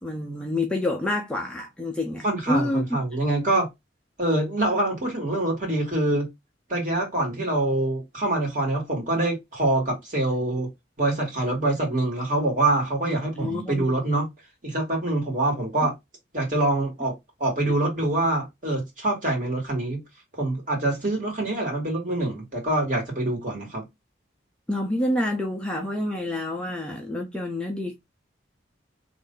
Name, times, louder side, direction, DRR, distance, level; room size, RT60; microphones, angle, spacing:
voice 1, 0.0-2.9 13.0-13.9 24.7-28.0, left 1 dB, 5° left, 0.6 m, -28 dB
voice 2, 2.2-3.7 4.2-6.3 6.7-10.7 11.0-14.3 14.6-15.9 16.3-20.0 20.4-23.9, right 2 dB, 45° right, 2.0 m, -25 dB
3.1 x 2.6 x 3.7 m
head